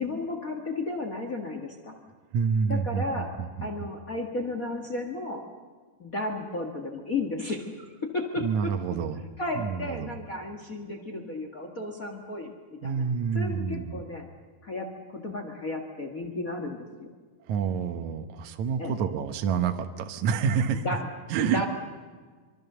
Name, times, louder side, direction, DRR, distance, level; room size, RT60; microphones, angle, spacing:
voice 1, 0.0-1.9 2.7-3.3 3.6-5.4 6.0-7.6 8.0-8.7 9.4-13.0 13.3-14.2 14.6-17.1 18.8-19.0 20.8-21.0 21.4-21.6, left 2 dB, 55° left, 3 dB, 0.9 m, -33 dB
voice 2, 2.3-3.7 8.4-9.2 9.5-10.2 12.8-14.0 17.5-20.8 21.3-21.7, right 6 dB, 70° right, 6 dB, 1.8 m, -28 dB
25.5 x 24.0 x 6.9 m, 1.5 s
omnidirectional pair, 4.7 m